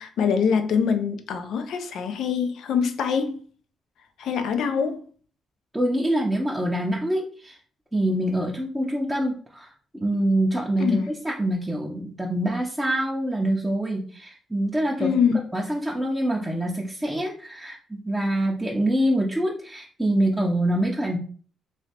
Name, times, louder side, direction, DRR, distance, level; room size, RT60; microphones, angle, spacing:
voice 1, 0.0-3.4 4.2-5.0 10.8-11.1 15.0-15.4, left 6 dB, 75° left, 0.5 m, -24 dB
voice 2, 5.7-7.6 7.9-9.7 9.9-15.1 15.5-21.2, right 1 dB, 5° right, 0.5 m, -25 dB
3.1 x 2.8 x 2.8 m
cardioid pair, 90°, 0 cm